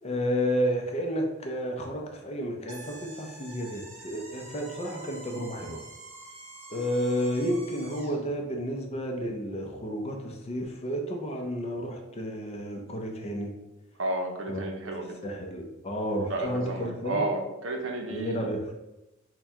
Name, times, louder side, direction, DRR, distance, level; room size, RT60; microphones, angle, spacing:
voice 1, 0.0-5.8 6.7-13.5 14.5-14.6 15.2-17.2 18.1-18.7, equal, 30° left, 2 dB, 0.5 m, -31 dB
sound 1, 2.7-8.2, right 2 dB, 30° right, 0.8 m, -47 dB
voice 2, 14.0-15.2 16.3-18.5, right 2 dB, 75° right, 2 dB, 0.6 m, -32 dB
4.4 x 2.2 x 3.5 m, 0.97 s
head